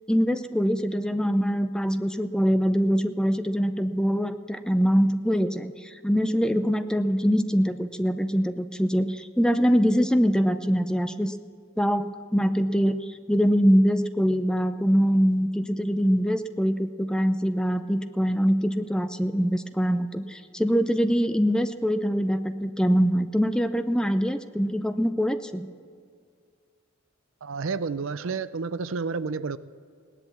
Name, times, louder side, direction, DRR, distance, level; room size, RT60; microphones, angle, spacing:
voice 1, 0.1-11.3 11.8-13.0 13.3-25.7, equal, 5° left, 9 dB, 0.5 m, -23 dB
voice 2, 27.4-29.6, right 4 dB, 70° right, 15 dB, 0.5 m, -30 dB
17.5 x 11.0 x 7.1 m, 2.2 s
head